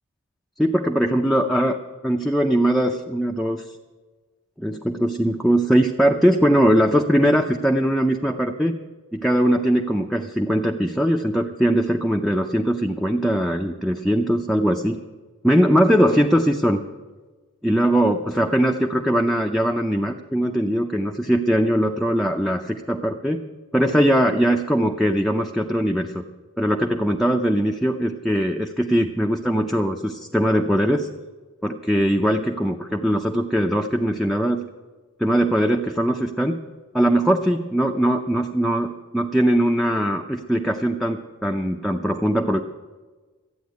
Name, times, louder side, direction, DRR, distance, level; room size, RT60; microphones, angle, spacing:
voice 1, 0.6-1.8 2.0-3.8 4.6-8.8 9.1-15.0 15.4-16.8 17.6-23.4 23.7-26.2 26.6-31.1 31.6-34.6 35.2-36.6 36.9-42.6, equal, ahead, 1 dB, 0.5 m, -21 dB
13.5 x 9.1 x 9.4 m, 1.3 s
head